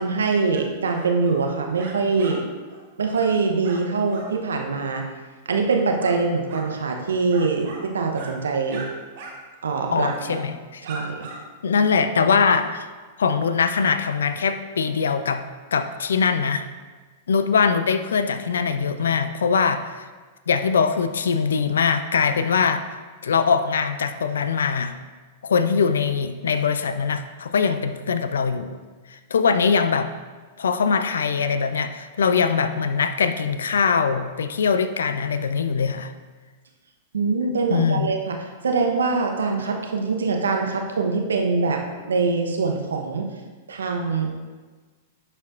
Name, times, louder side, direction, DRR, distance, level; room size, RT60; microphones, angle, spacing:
voice 1, 0.0-2.4 3.0-5.0 5.5-8.9 9.6-10.4 10.8-11.3 37.1-43.3 43.7-44.3, right 4 dB, 80° right, 3 dB, 0.8 m, -23 dB
sound 1, 0.5-0.6 0.9-1.4 1.8-2.4 2.7-2.8 3.1-3.3 3.6-3.8 4.1-4.3 5.6-6.2 6.5-6.7 7.3-7.8 8.1-8.3 8.7-8.9 9.1-9.3 9.6-9.8 10.4-10.6 10.8-11.4, right 3 dB, 60° right, 1.3 m, -39 dB
voice 2, 9.9-10.8 11.6-12.9 13.2-15.4 15.7-16.7 17.3-20.1 20.5-22.8 23.2-24.9 25.4-28.8 29.1-30.1 30.6-36.1 37.7-38.1, left 5 dB, 80° left, 10 dB, 0.4 m, -22 dB
11.0 x 4.4 x 2.5 m, 1.3 s
hypercardioid pair, 105°, 0 cm